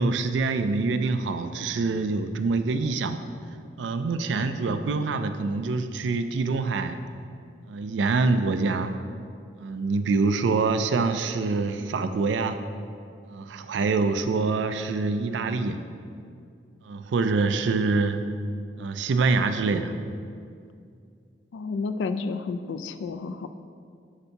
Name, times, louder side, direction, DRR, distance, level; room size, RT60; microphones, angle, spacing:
voice 1, 0.0-3.2 3.8-7.0 7.7-8.9 9.6-12.6 13.3-15.8 16.8-18.2 18.8-19.9, right 3 dB, 80° right, 9 dB, 0.4 m, -25 dB
voice 2, 21.5-23.5, left 4 dB, 80° left, 10 dB, 0.3 m, -31 dB
8.1 x 2.7 x 5.6 m, 2.3 s
head